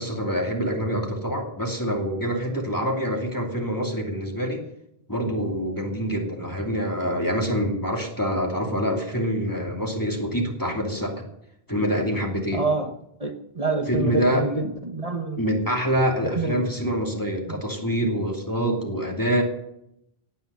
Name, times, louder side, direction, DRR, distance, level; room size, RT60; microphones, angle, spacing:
voice 1, 0.0-4.6 5.1-11.2 11.7-12.6 13.9-14.4 15.4-19.4, equal, 20° left, 0 dB, 2.7 m, -26 dB
voice 2, 12.5-12.9 13.2-15.4 16.3-16.7, right 3 dB, 35° right, 4 dB, 1.3 m, -27 dB
17.5 x 9.3 x 6.9 m, 0.79 s
omnidirectional pair, 1.0 m